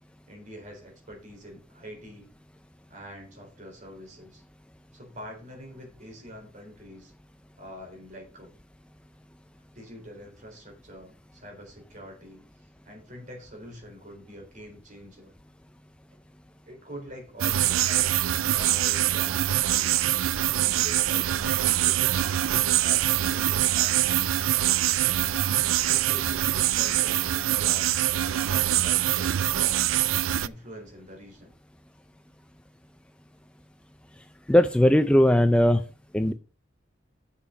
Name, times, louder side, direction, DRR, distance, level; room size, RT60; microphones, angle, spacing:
voice 1, 0.3-2.3 2.9-4.4 4.9-7.1 7.6-8.5 9.7-15.3 16.6-20.0 20.5-24.1 25.9-27.9 28.5-29.9 30.4-31.5, equal, 40° right, 2 dB, 4.0 m, -45 dB
sound 1, 17.4-30.5, right 13 dB, 90° right, 0.4 m, -24 dB
voice 2, 34.5-35.8 36.1-36.3, left 1 dB, 5° left, 9 dB, 0.4 m, -19 dB
7.1 x 7.0 x 5.5 m, 0.35 s
head